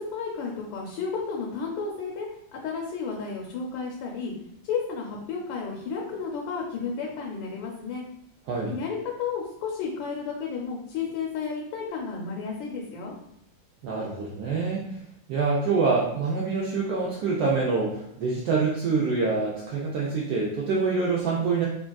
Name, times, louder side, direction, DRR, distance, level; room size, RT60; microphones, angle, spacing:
voice 1, 0.0-4.3 4.6-8.0 8.6-13.1, left 5 dB, 80° left, -1 dB, 1.3 m, -32 dB
voice 2, 13.8-15.0 15.3-21.7, right 4 dB, 75° right, -4 dB, 0.9 m, -26 dB
3.3 x 2.4 x 2.2 m, 0.75 s
omnidirectional pair, 2.1 m